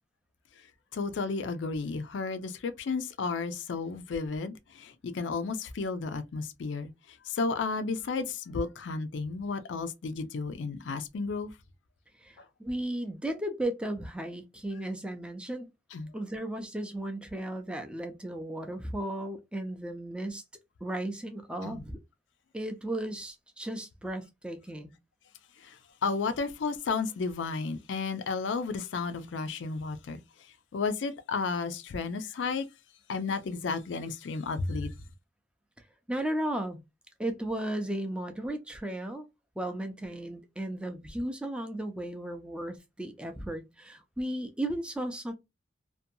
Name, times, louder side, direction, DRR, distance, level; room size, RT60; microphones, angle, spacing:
voice 1, 0.9-11.5 12.4-12.5 15.9-16.1 21.6-21.8 25.6-30.2 30.7-32.7 33.1-34.9, left 4 dB, 80° left, 0.4 m, -33 dB
voice 2, 12.2-15.7 16.1-20.4 20.8-22.0 22.5-24.9 36.1-36.8 37.2-39.3 39.6-45.3, right 1 dB, 5° right, 0.4 m, -35 dB
2.6 x 2.2 x 2.6 m
head